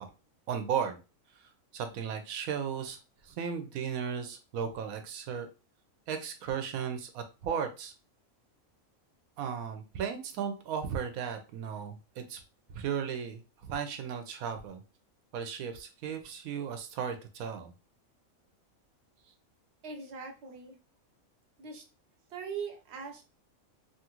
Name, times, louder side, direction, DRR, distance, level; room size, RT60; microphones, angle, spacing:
voice 1, 0.5-1.0 1.7-5.5 6.1-7.9 9.4-12.4 12.7-14.8 15.3-17.7, right 7 dB, 90° right, 7 dB, 1.0 m, -35 dB
voice 2, 19.8-20.8 21.6-21.8 22.3-23.2, right 5 dB, 55° right, 5 dB, 0.9 m, -41 dB
3.0 x 2.4 x 2.9 m, 0.31 s
omnidirectional pair, 1.4 m